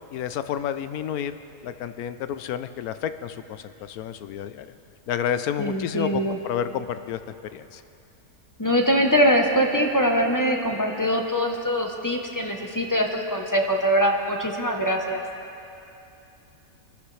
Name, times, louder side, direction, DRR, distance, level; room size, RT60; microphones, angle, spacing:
voice 1, 0.1-1.4 1.6-4.7 5.1-7.2 7.5-7.8, left 9 dB, 85° left, 11 dB, 1.1 m, -30 dB
voice 2, 5.6-6.4 8.6-15.2, equal, 15° left, 1 dB, 0.8 m, -23 dB
23.5 x 13.5 x 3.3 m, 2.7 s
omnidirectional pair, 1.5 m